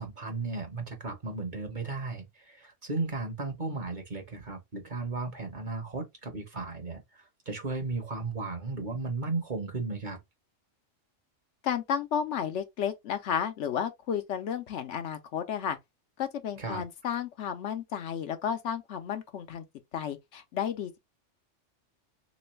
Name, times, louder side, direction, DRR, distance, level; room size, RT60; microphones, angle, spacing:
voice 1, 0.0-10.2 16.6-16.8, right 3 dB, 45° right, 0.9 m, -35 dB
voice 2, 11.6-15.8 16.2-19.6 19.9-21.0, left 8 dB, 70° left, 0.9 m, -32 dB
3.3 x 3.0 x 3.1 m
omnidirectional pair, 1.3 m